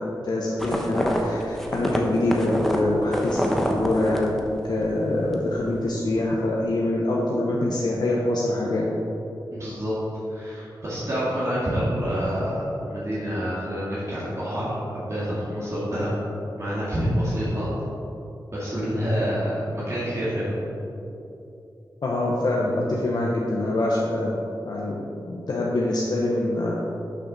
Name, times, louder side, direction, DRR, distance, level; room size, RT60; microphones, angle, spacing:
voice 1, 0.0-4.4 4.6-8.8 22.0-24.3 24.6-25.0 25.3-26.8, left 1 dB, 65° left, -4 dB, 1.0 m, -24 dB
sound 1, 0.6-5.0 5.2-5.7, equal, 5° left, 0.9 m, -27 dB
voice 2, 9.5-9.9 10.3-16.1 16.6-17.7 18.5-20.5, equal, 40° right, -9 dB, 2.1 m, -27 dB
11.5 x 6.4 x 4.1 m, 2.9 s
wide cardioid pair, 125°, 8 cm